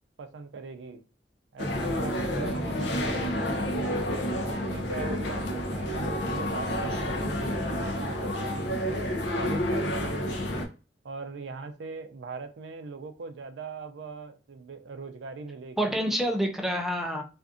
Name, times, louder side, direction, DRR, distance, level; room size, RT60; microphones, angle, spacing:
voice 1, 0.2-1.0 1.5-4.1 4.4-9.0 9.4-10.7 11.0-15.9 17.1-17.2, right 4 dB, 80° right, 0.4 m, -41 dB
sound 1, 1.6-10.7, left 1 dB, 65° left, 0.6 m, -30 dB
voice 2, 2.3-3.1 15.8-17.2, equal, ahead, 0.4 m, -29 dB
2.5 x 2.5 x 2.3 m
head